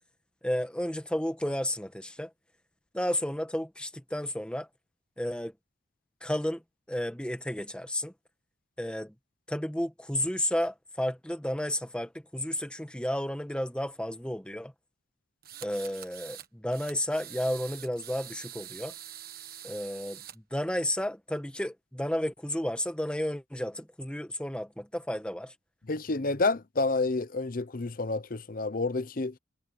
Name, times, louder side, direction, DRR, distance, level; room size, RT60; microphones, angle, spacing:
voice 1, 0.4-2.3 2.9-4.7 5.2-5.5 6.2-6.6 6.9-8.1 8.8-9.1 9.5-14.7 15.6-18.9 19.6-25.5, left 1 dB, 5° left, 1.4 m, -32 dB
sound 1, 15.4-16.5 16.7-20.3, right 11 dB, 50° right, 1.5 m, -45 dB
voice 2, 25.9-29.3, left 3 dB, 45° left, 0.7 m, -29 dB
head